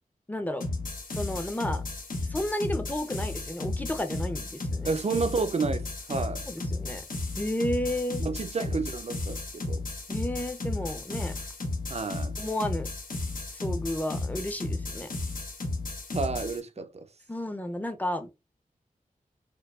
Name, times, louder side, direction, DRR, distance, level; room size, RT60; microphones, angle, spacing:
voice 1, 0.3-0.7 1.1-1.8 2.2-4.9 6.5-7.0 7.4-8.2 10.1-11.4 12.4-12.9 13.5-15.1 17.3-18.4, left 1 dB, 10° left, 0.6 m, -32 dB
sound 1, 0.6-16.6, left 2 dB, 75° left, 0.9 m, -34 dB
voice 2, 4.8-6.5 8.2-9.8 11.9-12.4 16.1-17.1, right 4 dB, 50° right, 0.5 m, -31 dB
4.5 x 2.3 x 2.3 m
wide cardioid pair, 85°, 14 cm